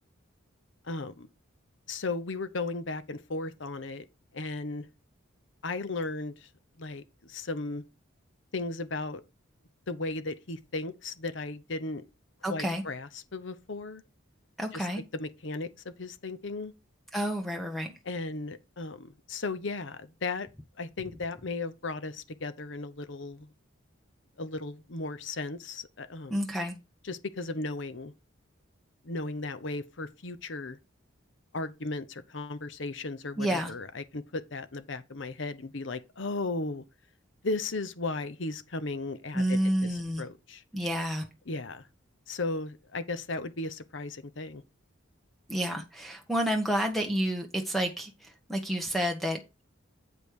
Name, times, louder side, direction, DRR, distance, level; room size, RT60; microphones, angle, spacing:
voice 1, 0.8-1.3 1.9-4.0 4.3-4.9 5.6-6.5 6.8-7.8 8.5-9.2 9.9-12.0 12.5-14.0 14.7-14.9 15.1-16.7 18.0-20.5 20.8-23.5 24.4-26.4 27.0-28.1 29.0-30.8 31.5-36.8 37.4-40.6 41.5-41.8 42.3-44.6, left 3 dB, 65° left, 0.9 m, -36 dB
voice 2, 12.4-12.8 14.6-15.0 17.1-17.9 26.3-26.7 33.4-33.7 39.3-40.2 40.7-41.3 45.5-49.6, equal, ahead, 1.1 m, -30 dB
8.3 x 5.3 x 4.7 m
head